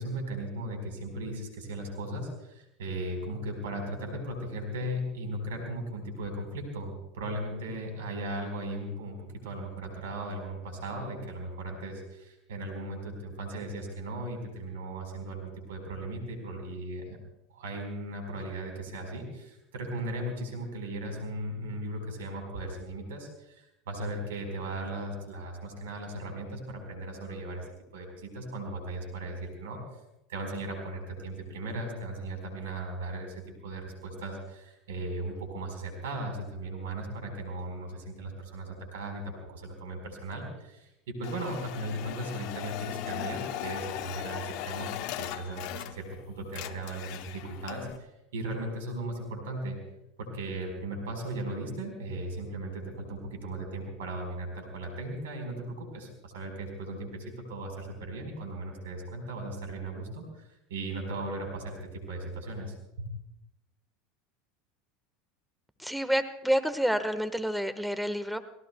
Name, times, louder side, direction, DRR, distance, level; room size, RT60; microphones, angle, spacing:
voice 1, 0.0-17.2 17.5-27.6 27.9-29.8 30.3-33.3 33.6-44.9 45.2-49.8 50.2-60.4 60.7-63.1, right 1 dB, 80° right, 3 dB, 4.4 m, -37 dB
sound 1, 41.2-46.2 46.4-48.0, left 14 dB, 60° left, 0.8 m, -38 dB
voice 2, 65.8-68.4, equal, ahead, 11 dB, 1.4 m, -28 dB
29.0 x 18.5 x 2.3 m, 0.87 s
hypercardioid pair, 85°, 0 cm